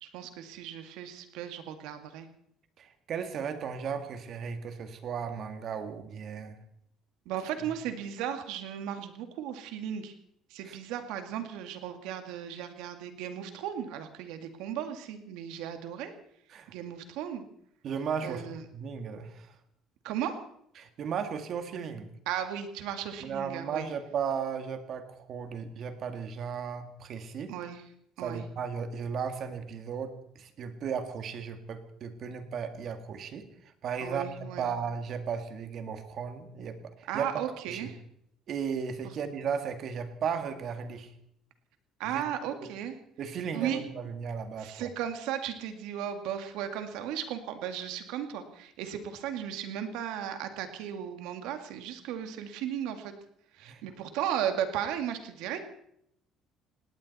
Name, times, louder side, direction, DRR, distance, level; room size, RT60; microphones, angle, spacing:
voice 1, 0.0-2.3 7.3-10.1 10.5-16.1 16.7-17.5 18.2-18.6 20.0-20.4 22.3-23.9 27.5-27.8 28.2-28.4 34.0-34.7 37.1-37.9 42.0-43.0 43.5-43.9 44.6-53.1 53.6-55.6, right 9 dB, 85° right, 7 dB, 2.0 m, -35 dB
voice 2, 2.8-6.6 7.6-7.7 10.6-10.8 16.5-16.7 17.8-19.5 20.8-22.1 23.2-27.5 28.2-33.5 33.8-37.9 38.5-41.1 42.0-42.2 42.6-42.7 43.2-44.9 53.6-53.8, right 6 dB, 50° right, 8 dB, 1.9 m, -35 dB
19.5 x 18.0 x 4.2 m, 0.74 s
cardioid pair, 135°, 0 cm